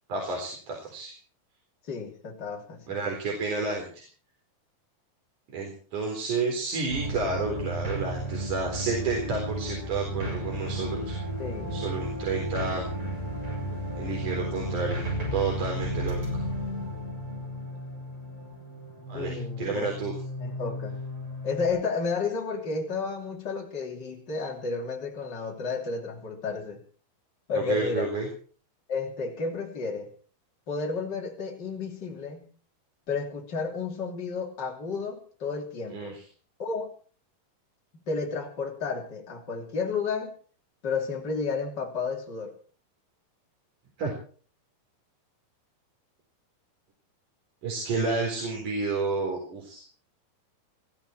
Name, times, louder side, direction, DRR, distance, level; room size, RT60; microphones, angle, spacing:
voice 1, 0.1-1.1 2.9-4.0 5.5-11.1 11.7-12.8 14.0-16.4 19.1-20.1 27.5-28.3 35.9-36.1 44.0-44.1 47.6-49.8, right 4 dB, 55° right, 0 dB, 5.5 m, -30 dB
voice 2, 1.9-2.8 11.4-11.9 19.1-19.9 20.4-21.0 21.4-26.8 27.5-28.1 28.9-30.1 30.7-32.5 33.1-36.2 36.6-36.9 37.9-40.3 40.8-42.5, left 4 dB, 30° left, 0 dB, 3.5 m, -32 dB
sound 1, 6.9-21.7, equal, 35° right, 7.8 m, -33 dB
20.0 x 15.0 x 4.5 m, 0.43 s
omnidirectional pair, 4.3 m